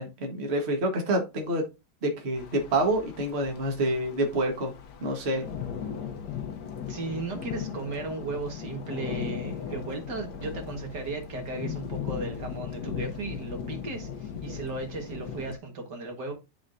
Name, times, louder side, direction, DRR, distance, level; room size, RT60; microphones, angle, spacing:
voice 1, 0.0-1.7 2.0-4.7 5.0-5.4, right 1 dB, 40° right, 1.5 m, -27 dB
sound 1, 2.4-15.6, left 7 dB, 70° left, 1.4 m, -37 dB
voice 2, 6.9-16.3, right 3 dB, 70° right, 2.2 m, -36 dB
11.0 x 3.8 x 2.6 m
omnidirectional pair, 1.9 m